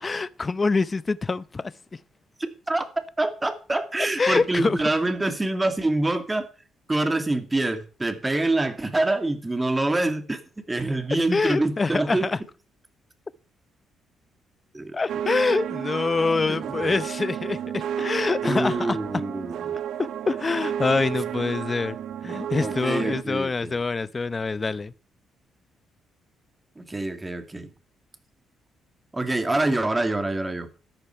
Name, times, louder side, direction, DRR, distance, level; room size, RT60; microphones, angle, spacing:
voice 1, 0.0-1.7 4.0-4.8 11.3-12.4 14.9-19.0 20.0-22.0 22.2-24.9, left 4 dB, 30° left, 0.7 m, -25 dB
voice 2, 2.4-2.9 3.2-6.5 6.9-10.4 10.7-12.3 14.7-14.9 16.5-16.9 18.4-19.8 22.6-23.7 26.8-27.7 29.1-30.7, right 2 dB, 15° right, 2.1 m, -26 dB
sound 1, 15.1-23.2, right 9 dB, 75° right, 0.8 m, -31 dB
13.5 x 10.5 x 4.5 m
cardioid pair, 90°, 0 cm